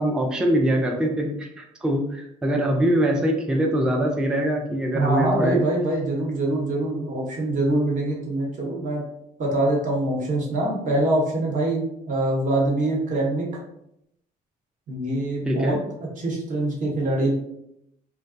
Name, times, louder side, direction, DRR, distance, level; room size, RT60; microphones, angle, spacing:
voice 1, 0.0-5.6 15.5-15.8, right 1 dB, 5° right, 2 dB, 0.3 m, -23 dB
voice 2, 4.9-9.0 9.4-13.5 14.9-15.8 16.2-17.3, right 1 dB, 50° right, -2 dB, 0.9 m, -24 dB
2.4 x 2.2 x 2.5 m, 0.78 s
cardioid pair, 110°, 17 cm